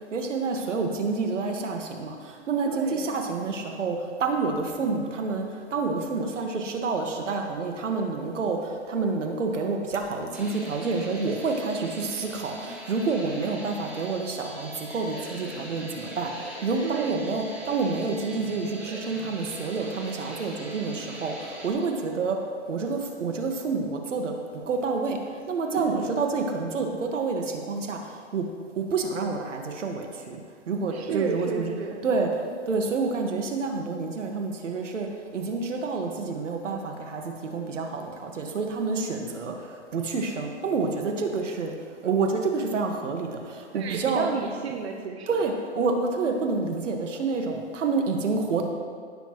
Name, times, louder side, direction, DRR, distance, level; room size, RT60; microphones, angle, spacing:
voice 1, 0.1-16.3 16.6-22.4 22.7-25.2 25.5-28.0 28.3-28.4 28.8-30.4 30.7-31.7 32.0-32.3 32.7-35.1 35.3-41.7 42.0-44.3 45.3-48.6, right 4 dB, 85° right, 3 dB, 1.7 m, -28 dB
voice 2, 2.7-3.2 16.8-17.3 25.7-26.2 30.9-32.0 43.7-45.4, right 5 dB, 60° right, 2 dB, 1.0 m, -32 dB
sound 1, 10.3-21.7, right 1 dB, 5° right, 1.0 m, -41 dB
16.5 x 7.2 x 3.1 m, 2.1 s
hypercardioid pair, 165°, 36 cm